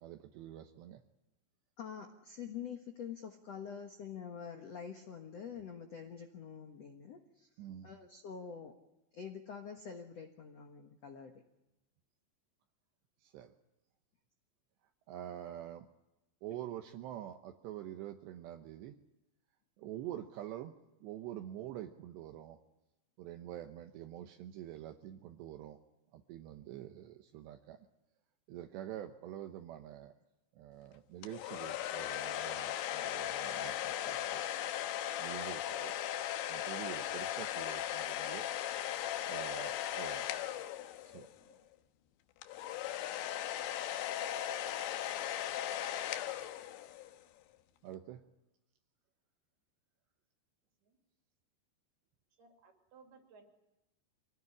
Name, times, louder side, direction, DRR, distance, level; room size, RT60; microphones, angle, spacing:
voice 1, 0.0-1.0 7.6-7.9 13.2-13.5 15.1-15.9 16.4-19.0 19.8-20.7 21.0-22.6 23.2-25.8 26.1-27.9 28.5-30.1 30.5-34.4 35.2-35.9 36.5-38.5 39.2-40.3 41.0-41.3 47.8-48.2, right 12 dB, 75° right, 5 dB, 3.1 m, -46 dB
voice 2, 1.8-7.5 7.8-8.7 9.1-11.3 41.3-41.6, left 7 dB, 70° left, 4 dB, 1.5 m, -46 dB
sound 1, 31.2-41.4 42.4-47.1, left 12 dB, 85° left, 3.4 m, -38 dB
voice 3, 52.4-53.4, right 4 dB, 60° right, 3 dB, 4.9 m, -60 dB
25.5 x 17.5 x 9.9 m, 0.95 s
omnidirectional pair, 5.2 m